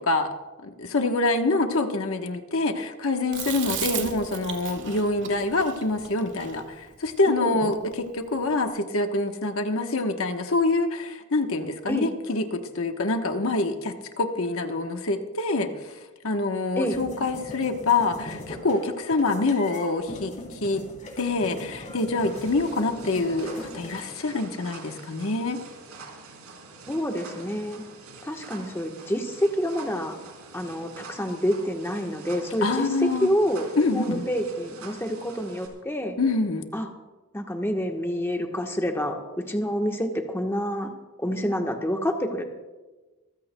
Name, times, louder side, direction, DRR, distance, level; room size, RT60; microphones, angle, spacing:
voice 1, 0.6-16.0 16.2-20.8 21.2-25.6 32.6-33.3 33.8-34.3 36.2-36.7, left 3 dB, 65° left, 5 dB, 1.1 m, -26 dB
Chewing mastication, 3.3-7.7, right 5 dB, 55° right, 1.9 m, -34 dB
sound 1, 16.9-24.0, left 1 dB, 35° left, 3.2 m, -40 dB
sound 2, 22.3-35.7, right 4 dB, 80° right, 3.6 m, -45 dB
voice 2, 26.9-27.8 28.2-30.2 30.5-36.2 36.7-36.9 37.3-40.9 41.2-42.4, equal, 10° left, 3 dB, 1.1 m, -28 dB
27.0 x 15.0 x 2.2 m, 1.2 s
head